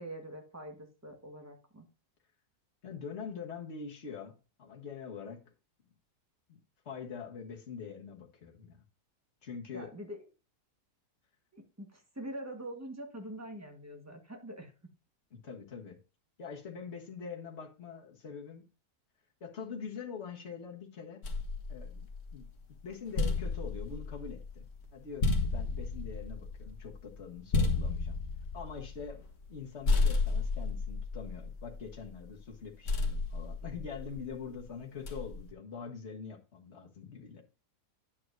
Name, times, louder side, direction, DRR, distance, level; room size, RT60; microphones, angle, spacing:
voice 1, 0.0-1.9 9.7-10.2 11.5-14.7, right 1 dB, 10° right, 1.4 m, -44 dB
voice 2, 2.8-5.5 6.5-6.6 6.8-8.8 9.4-9.9 15.3-16.0 16.4-18.7 19.4-21.2 21.7-22.1 22.3-24.7 24.9-28.2 28.5-37.4, left 6 dB, 45° left, 1.7 m, -44 dB
sound 1, 21.2-22.5 22.9-29.6 29.9-32.1 32.9-34.3 35.1-35.5, left 3 dB, 65° left, 1.8 m, -32 dB
9.6 x 7.3 x 2.7 m
omnidirectional pair, 1.7 m